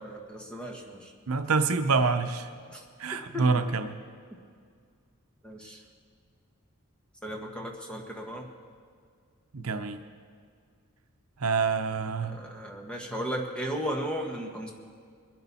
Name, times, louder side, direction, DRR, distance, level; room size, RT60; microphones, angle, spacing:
voice 1, 0.0-1.1 2.7-2.8 3.3-3.4 5.4-5.8 7.2-8.5 12.3-14.7, equal, 5° left, 0 dB, 1.5 m, -35 dB
voice 2, 1.3-2.5 3.0-4.0 9.5-10.0 11.4-12.4, right 4 dB, 75° right, 8 dB, 0.7 m, -26 dB
22.0 x 10.5 x 4.2 m, 2.1 s
head